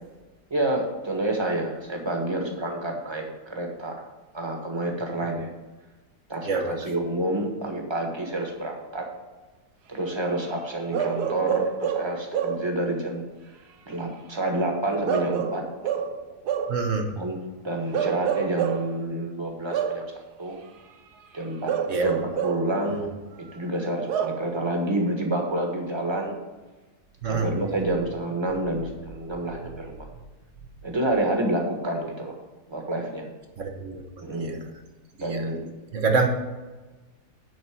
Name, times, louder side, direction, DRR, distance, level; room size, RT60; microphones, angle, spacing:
voice 1, 0.5-4.0 4.3-5.5 6.3-9.1 9.9-13.2 13.9-15.6 17.1-17.4 17.6-20.1 20.4-20.6 21.3-23.1 23.4-26.4 27.2-30.1 30.8-32.4 32.7-33.3 34.2-34.6 35.2-35.7, right 1 dB, 15° right, 1 dB, 1.4 m, -28 dB
voice 2, 6.5-6.8 16.7-17.1 21.9-22.1 27.2-27.5 33.6-34.6 35.3-35.4 35.9-36.3, right 4 dB, 55° right, 4 dB, 1.2 m, -26 dB
Bark / Livestock farm animals working animals, 10.9-12.8 15.1-16.8 17.9-18.9 19.7-20.1 21.7-22.7 24.1-24.5, right 8 dB, 75° right, 1.3 m, -27 dB
10.5 x 4.2 x 7.6 m, 1.2 s
omnidirectional pair, 1.8 m